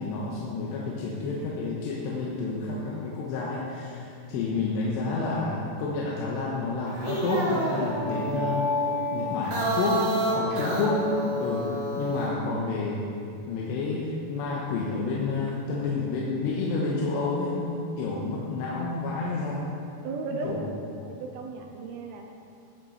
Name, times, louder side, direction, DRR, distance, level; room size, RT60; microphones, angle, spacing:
voice 1, 0.0-8.8 9.1-10.1 10.4-11.0 11.4-13.1 13.5-19.7 20.4-20.7, left 3 dB, 90° left, -4 dB, 3.2 m, -29 dB
voice 2, 4.3-4.7 20.0-20.6 21.0-22.3, right 4 dB, 75° right, 2 dB, 2.4 m, -36 dB
sound 1, 6.9-12.4, equal, 55° right, 2.8 m, -29 dB
17.5 x 6.3 x 4.6 m, 2.5 s
omnidirectional pair, 4.9 m